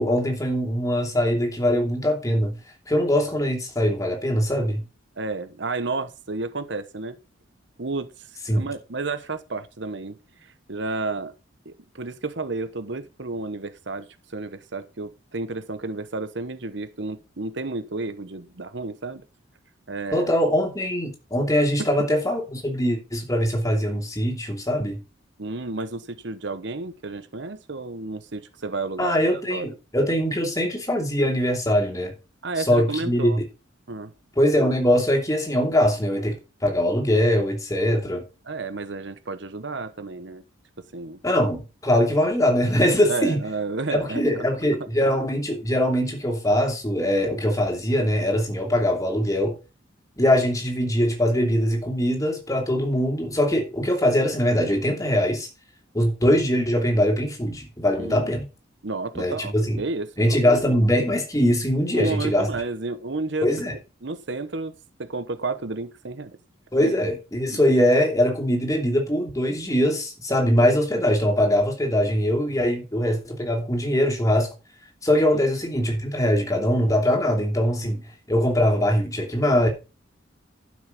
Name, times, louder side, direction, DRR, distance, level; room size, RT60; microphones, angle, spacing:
voice 1, 0.0-2.6 2.9-4.8 8.5-8.7 20.1-25.0 29.0-32.1 32.7-33.4 34.4-36.3 36.6-38.2 41.2-43.4 43.9-49.6 50.2-55.5 55.9-58.4 59.1-59.8 60.2-62.5 63.4-63.7 66.7-74.5 75.0-78.0 78.3-79.7, equal, 20° left, 2.8 m, -22 dB
voice 2, 5.2-7.2 7.8-11.3 11.6-19.2 19.9-20.3 25.4-29.7 32.4-33.4 33.9-34.1 38.5-40.4 40.8-41.2 43.1-44.4 45.0-45.1 58.0-58.3 58.8-60.8 61.9-63.5 64.0-64.7 65.0-66.4 66.8-66.9 67.5-67.6 75.3-75.4, right 3 dB, 65° right, 1.0 m, -31 dB
12.0 x 6.3 x 5.3 m
head